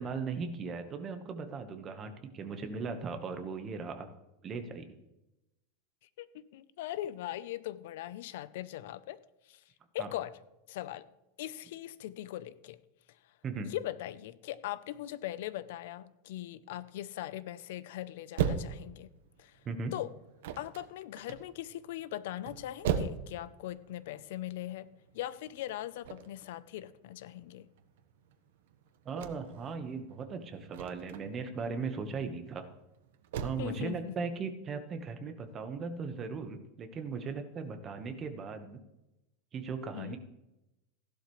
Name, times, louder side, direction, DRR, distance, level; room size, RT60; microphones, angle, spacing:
voice 1, 0.0-4.1 4.4-4.9 10.0-10.1 13.4-13.7 19.6-19.9 29.0-32.6 33.4-38.8 39.5-40.2, right 5 dB, 25° right, 1.3 m, -38 dB
voice 2, 6.5-9.2 9.5-9.6 9.9-10.3 10.7-11.1 11.4-12.8 13.6-19.1 19.4-19.5 19.9-20.1 20.6-24.9 25.1-27.7 33.6-34.2 39.8-40.2, left 13 dB, 70° left, 0.7 m, -40 dB
sound 1, 18.4-33.5, right 8 dB, 75° right, 1.2 m, -39 dB
16.0 x 11.5 x 3.3 m
supercardioid pair, 155°, 0 cm